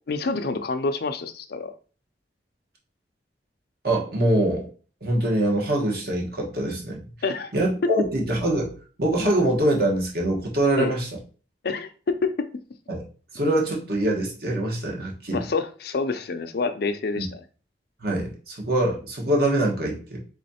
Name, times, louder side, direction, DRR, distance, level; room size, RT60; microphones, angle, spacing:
voice 1, 0.1-1.7 7.2-7.5 10.8-11.0 11.6-12.5 15.3-17.4, left 4 dB, 60° left, 0.5 m, -27 dB
voice 2, 3.8-4.7 5.0-7.0 7.5-11.1 12.9-13.0 13.3-15.4 17.2-17.3 18.0-20.2, right 1 dB, 60° right, 1.3 m, -24 dB
3.6 x 3.1 x 4.2 m
head